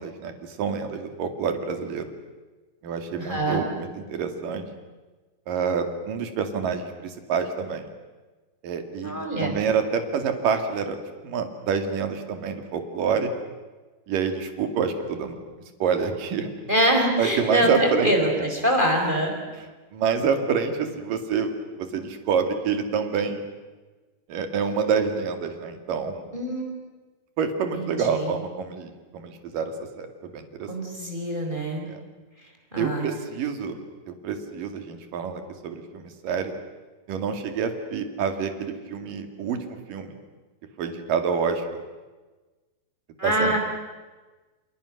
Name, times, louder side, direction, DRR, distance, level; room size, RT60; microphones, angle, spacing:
voice 1, 0.0-2.1 2.8-4.7 5.5-7.9 8.6-11.0 11.2-13.3 14.1-15.4 15.8-16.5 17.2-18.1 19.6-19.7 19.9-23.4 24.3-26.2 27.4-30.7 31.9-32.0 32.8-33.8 34.1-36.5 37.1-39.6 39.9-40.1 40.8-41.6 43.2-43.6, right 6 dB, 55° right, 7 dB, 3.4 m, -27 dB
voice 2, 3.2-3.7 9.0-9.6 16.7-19.4 26.3-26.7 27.7-28.3 30.7-31.9 32.7-33.1 43.2-43.6, right 1 dB, 10° right, 2 dB, 4.3 m, -24 dB
29.0 x 28.5 x 6.5 m, 1.3 s
omnidirectional pair, 5.3 m